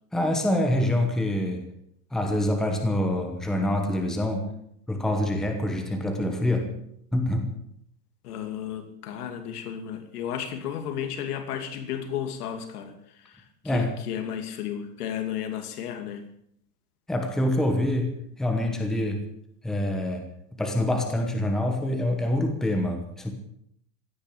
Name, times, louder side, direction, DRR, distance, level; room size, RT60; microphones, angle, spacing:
voice 1, 0.1-1.6 2.1-4.5 4.9-6.7 7.1-7.5 13.6-13.9 17.1-18.1 18.4-19.2 19.6-23.3, left 1 dB, ahead, 4 dB, 1.1 m, -26 dB
voice 2, 8.2-16.3, left 9 dB, 70° left, 6 dB, 2.8 m, -33 dB
16.0 x 9.8 x 8.6 m, 0.70 s
supercardioid pair, 175°, 47 cm